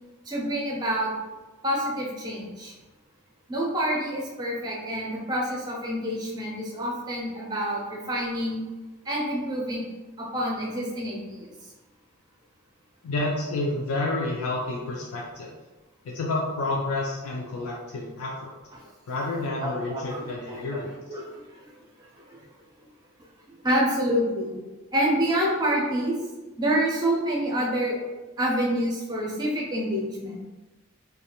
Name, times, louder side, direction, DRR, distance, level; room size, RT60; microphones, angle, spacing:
voice 1, 0.2-1.1 1.6-2.7 3.5-8.6 9.0-9.9 10.2-11.7 18.7-18.8 19.6-20.8 21.1-22.4 23.5-24.6 24.9-26.2 26.6-28.0 28.4-30.4, equal, 20° right, -2 dB, 0.4 m, -28 dB
voice 2, 13.0-15.5 16.0-18.5 19.1-20.9, left 2 dB, 75° left, -3 dB, 0.4 m, -29 dB
2.4 x 2.2 x 2.8 m, 1.2 s
head